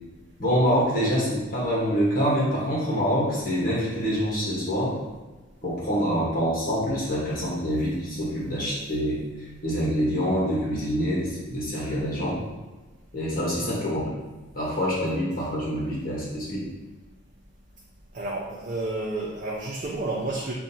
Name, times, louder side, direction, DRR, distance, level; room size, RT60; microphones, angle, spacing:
voice 1, 0.4-4.9 5.6-9.2 9.6-12.4 13.1-14.1 14.5-16.6, equal, 45° left, -6 dB, 1.3 m, -25 dB
voice 2, 18.1-20.5, right 2 dB, 40° right, -3 dB, 0.5 m, -30 dB
7.2 x 2.5 x 2.8 m, 1.2 s
head